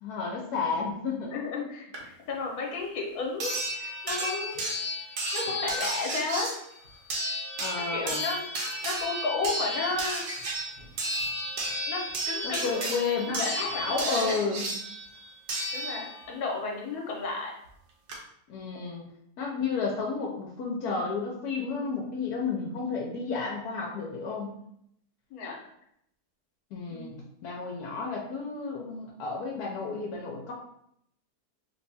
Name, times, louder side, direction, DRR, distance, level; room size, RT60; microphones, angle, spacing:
voice 1, 0.0-1.3 7.6-8.2 12.4-14.7 18.5-19.1 19.4-24.5 26.7-30.5, left 4 dB, 85° left, -1 dB, 1.2 m, -32 dB
voice 2, 1.3-4.7 5.3-6.5 7.9-8.5 8.8-10.2 11.9-12.9 13.3-14.4 15.7-17.5 25.3-25.6 26.9-27.1, left 4 dB, 70° left, -1 dB, 1.3 m, -33 dB
sound 1, 1.9-2.0 3.4-16.4 17.7-17.8 18.1-18.2, right 1 dB, 85° right, 1.4 m, -33 dB
3.3 x 2.3 x 4.0 m, 0.73 s
omnidirectional pair, 1.6 m